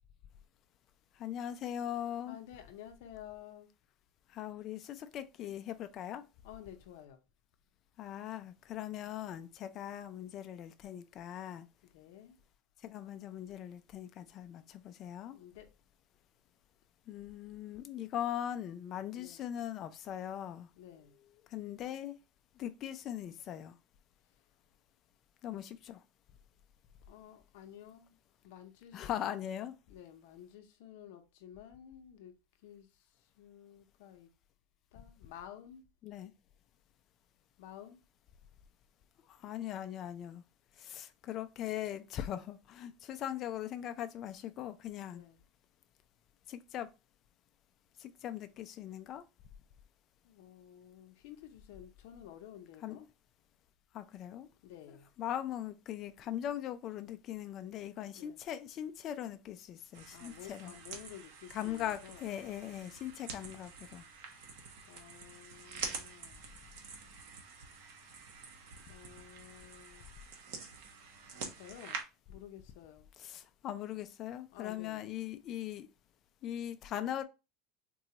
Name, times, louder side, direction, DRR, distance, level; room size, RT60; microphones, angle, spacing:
voice 1, 1.2-2.4 4.3-6.2 8.0-11.7 12.8-15.3 17.1-20.7 21.5-22.2 22.6-23.8 25.4-26.0 28.9-29.8 36.0-36.3 39.3-40.4 40.8-45.2 46.5-46.9 48.0-49.3 52.8-53.1 53.9-54.5 55.2-60.7 61.5-64.0 73.2-75.9 76.4-77.2, left 11 dB, 35° left, 0.4 m, -40 dB
voice 2, 2.3-3.7 6.4-7.2 11.9-12.4 15.3-15.7 19.2-19.4 20.8-21.2 27.1-28.2 28.4-29.3 29.9-32.4 32.6-34.3 34.9-35.9 37.6-38.0 45.1-45.4 50.2-53.0 54.6-55.1 58.1-58.4 60.1-62.2 64.9-66.5 68.9-70.1 71.4-72.0 72.3-73.1 74.5-75.1, left 10 dB, 75° left, 0.6 m, -52 dB
sound 1, 59.9-72.0, right 5 dB, 75° right, 0.8 m, -47 dB
3.9 x 2.3 x 2.8 m
cardioid pair, 160°, 0 cm